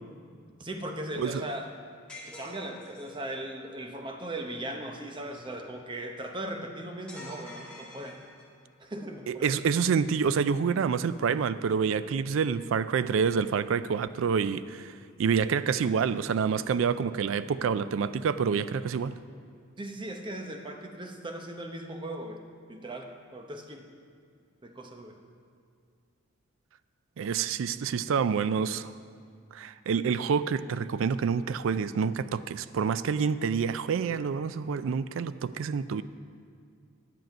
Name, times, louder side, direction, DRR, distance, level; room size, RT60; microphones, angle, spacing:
voice 1, 0.6-1.7 2.3-8.2 8.8-9.6 19.8-22.4 22.7-23.9 24.6-25.2, right 1 dB, 20° right, 4 dB, 0.7 m, -38 dB
sound 1, 2.1-3.3 7.1-8.7, left 1 dB, 5° left, 1.4 m, -46 dB
voice 2, 9.3-14.9 15.2-19.2 27.2-28.9 29.5-36.0, right 6 dB, 65° right, 14 dB, 0.3 m, -27 dB
10.5 x 7.6 x 5.2 m, 2.2 s
head